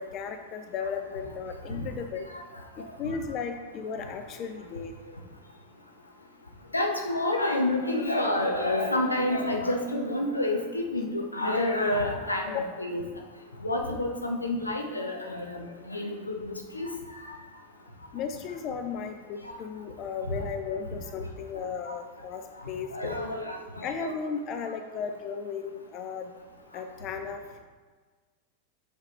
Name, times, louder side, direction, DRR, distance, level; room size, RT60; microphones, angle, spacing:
voice 1, 0.0-2.3 2.8-4.9 12.5-12.7 18.1-23.2 23.8-26.3 26.7-27.6, left 6 dB, 35° left, 6 dB, 0.4 m, -35 dB
voice 2, 6.7-13.0 13.6-16.2 16.4-16.9 22.9-24.1, left 1 dB, 80° left, 2 dB, 0.7 m, -28 dB
6.5 x 4.8 x 3.2 m, 1.4 s
figure-of-eight pair, 90°, 0 cm